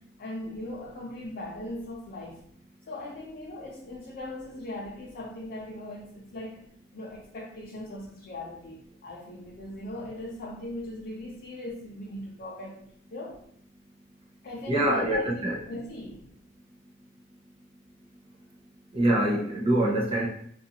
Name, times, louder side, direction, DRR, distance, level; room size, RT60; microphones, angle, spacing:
voice 1, 0.2-2.4 2.9-6.6 6.9-13.4 14.4-16.2, left 1 dB, 55° left, -4 dB, 0.5 m, -39 dB
voice 2, 14.7-15.5 18.9-20.3, right 1 dB, 30° right, -3 dB, 0.5 m, -24 dB
2.6 x 2.3 x 2.7 m, 0.66 s
head